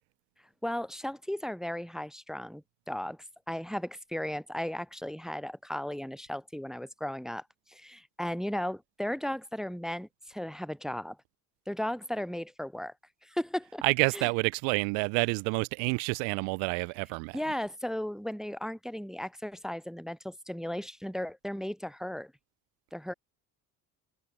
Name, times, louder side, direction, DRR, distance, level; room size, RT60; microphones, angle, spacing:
voice 1, 0.6-3.2 3.5-7.4 7.7-11.2 11.7-12.9 13.2-13.8 14.1-14.3 17.3-22.3 22.9-23.1, left 1 dB, ahead, 0.4 m, -35 dB
voice 2, 13.8-17.4, right 37 dB, 65° right, 0.7 m, -28 dB
hypercardioid pair, 55°, 47 cm